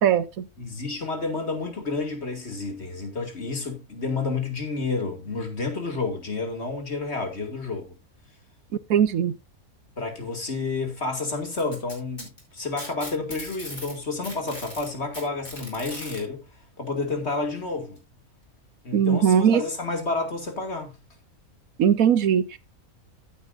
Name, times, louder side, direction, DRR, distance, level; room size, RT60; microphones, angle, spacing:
voice 1, 0.0-0.5 8.9-9.3 18.9-19.6 21.8-22.6, right 8 dB, 75° right, 1.2 m, -20 dB
voice 2, 0.6-8.0 10.0-16.4 16.8-18.0 18.8-20.9, left 3 dB, 45° left, 2.6 m, -30 dB
Packing tape duct tape, 11.5-14.0 14.2-16.2 17.3-17.4 18.0-18.1 18.9-19.0, left 1 dB, 30° left, 5.4 m, -39 dB
14.5 x 8.7 x 2.6 m
omnidirectional pair, 1.5 m